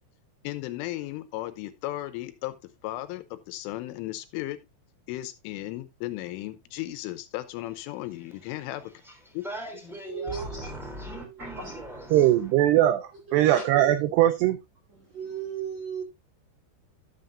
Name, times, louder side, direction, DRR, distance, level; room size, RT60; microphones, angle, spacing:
voice 1, 0.4-2.6 2.8-4.6 5.1-8.9 9.3-9.4, left 16 dB, 85° left, 3.4 m, -35 dB
voice 2, 8.8-12.5, right 1 dB, ahead, 1.7 m, -40 dB
voice 3, 10.1-11.7 13.3-13.6 14.9-16.0, right 6 dB, 60° right, 1.9 m, -37 dB
voice 4, 12.1-14.6, right 13 dB, 85° right, 2.3 m, -21 dB
12.5 x 7.8 x 2.6 m
omnidirectional pair, 5.6 m